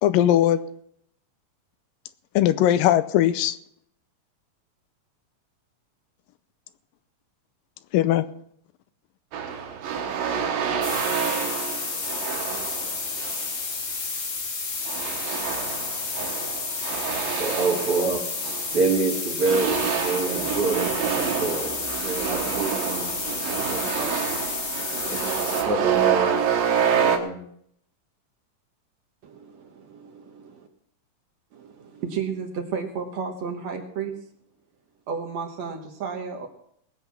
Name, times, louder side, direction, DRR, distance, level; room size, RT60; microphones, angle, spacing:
voice 1, 0.0-0.6 2.4-3.6 7.9-8.3, left 12 dB, 85° left, 2.3 m, -19 dB
sound 1, 9.3-13.5 14.9-19.0 19.4-27.2, right 8 dB, 80° right, 3.2 m, -27 dB
sound 2, 10.8-25.6, left 4 dB, 40° left, 1.5 m, -31 dB
voice 2, 17.4-18.3 18.7-21.7 22.0-23.1 23.6-24.4 25.1-25.2 25.5-26.5 26.9-27.5, right 3 dB, 45° right, 2.5 m, -27 dB
voice 3, 29.2-30.7 31.5-34.2 35.1-36.5, right 6 dB, 60° right, 2.2 m, -33 dB
20.0 x 8.0 x 6.0 m
omnidirectional pair, 4.0 m